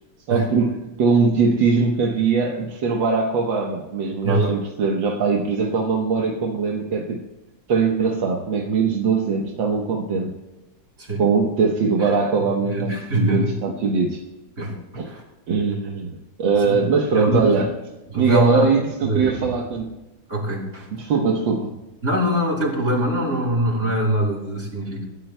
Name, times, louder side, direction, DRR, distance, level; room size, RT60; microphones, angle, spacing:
voice 1, 0.3-7.2 7.7-10.3 11.2-14.2 15.0-15.1 15.5-17.7 18.1-19.9 20.9-21.8, right 4 dB, 90° right, 1 dB, 1.9 m, -21 dB
voice 2, 4.2-4.5 11.0-11.3 12.0-12.1 12.8-13.5 14.6-15.2 16.7-16.8 17.1-17.6 18.1-18.7 19.0-19.4 20.3-20.9 22.0-25.1, right 1 dB, 40° right, -2 dB, 3.8 m, -23 dB
25.0 x 13.5 x 2.2 m, 1.0 s
omnidirectional pair, 2.0 m